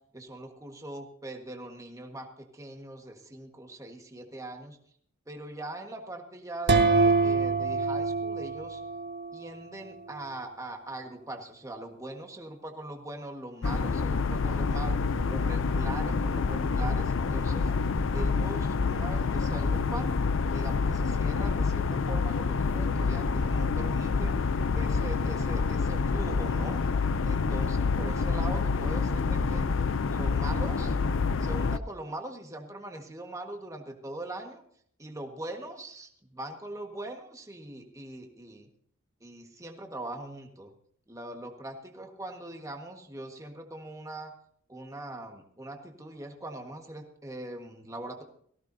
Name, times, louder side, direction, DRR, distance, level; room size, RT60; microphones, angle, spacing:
voice 1, 0.1-2.3 2.5-4.8 5.3-8.8 9.3-15.0 15.3-17.7 18.1-20.2 20.5-24.4 24.7-26.8 27.2-29.7 30.1-30.9 31.4-34.6 35.0-38.7 39.2-40.7 41.1-44.3 44.7-48.2, right 1 dB, 15° right, 3 dB, 1.5 m, -41 dB
sound 1, 6.7-9.4, right 4 dB, 50° right, 1.3 m, -25 dB
sound 2, 13.6-31.8, left 4 dB, 60° left, 0.5 m, -27 dB
18.5 x 15.5 x 2.7 m, 0.62 s
head